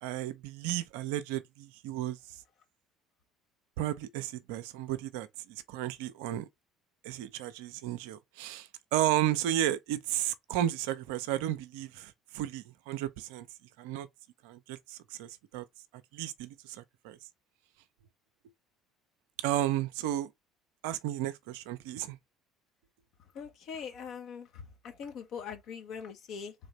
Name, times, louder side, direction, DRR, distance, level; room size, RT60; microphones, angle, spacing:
voice 1, 0.0-2.2 3.8-6.5 7.0-13.5 13.8-14.1 14.4-15.6 16.1-17.2 19.4-20.3 20.8-22.2, right 13 dB, 65° right, 0.4 m, -33 dB
voice 2, 23.3-26.5, left 6 dB, 50° left, 1.2 m, -42 dB
3.5 x 3.2 x 4.0 m
figure-of-eight pair, 55°, 0 cm